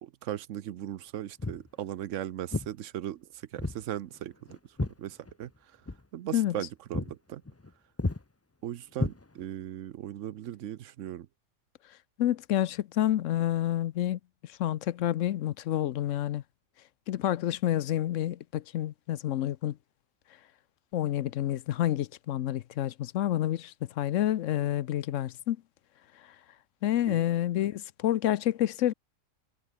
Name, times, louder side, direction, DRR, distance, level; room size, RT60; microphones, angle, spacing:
voice 1, 0.0-5.5 6.1-7.4 8.6-11.3 27.1-27.3, right 12 dB, 75° right, 1.0 m, -38 dB
Walk footsteps, 1.4-1.7 2.5-2.7 3.6-3.8 4.1-5.6 5.8-6.0 6.5-6.6 6.9-7.1 7.4-7.7 8.0-8.2 8.9-9.6, left 2 dB, 15° left, 0.5 m, -33 dB
voice 2, 12.2-14.2 14.6-16.4 17.1-19.8 20.9-25.6 26.8-28.9, left 12 dB, 80° left, 1.0 m, -28 dB
omnidirectional pair, 1.3 m